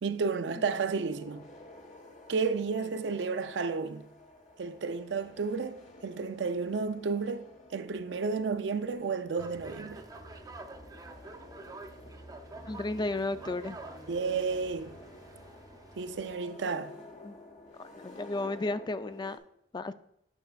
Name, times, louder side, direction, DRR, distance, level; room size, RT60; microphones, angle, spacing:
voice 1, 0.0-1.5 2.3-4.1 4.6-7.4 7.7-10.0 14.1-15.0 16.0-16.9, right 4 dB, 80° right, 0.5 m, -32 dB
sound 1, 0.7-19.4, left 2 dB, 45° left, 1.1 m, -52 dB
sound 2, 9.4-16.3, right 2 dB, 20° right, 0.6 m, -48 dB
voice 2, 12.7-13.8 17.2-17.4 17.8-19.4 19.7-19.9, left 2 dB, 25° left, 0.3 m, -33 dB
9.0 x 6.2 x 2.3 m
head